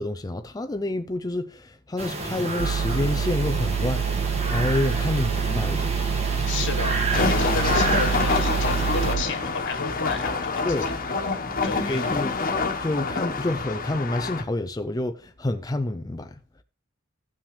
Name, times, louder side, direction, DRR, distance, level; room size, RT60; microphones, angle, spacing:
voice 1, 0.0-5.9 10.6-10.9 11.9-12.3 12.8-16.4, left 1 dB, 20° left, 0.5 m, -28 dB
sound 1, 2.0-9.1, right 2 dB, 30° right, 1.8 m, -29 dB
sound 2, 2.6-9.2, right 7 dB, 70° right, 0.4 m, -27 dB
voice 2, 6.5-10.9 11.6-12.2, left 4 dB, 65° left, 1.5 m, -32 dB
sound 3, 7.1-14.4, left 3 dB, 45° left, 1.3 m, -27 dB
14.5 x 6.0 x 3.3 m
head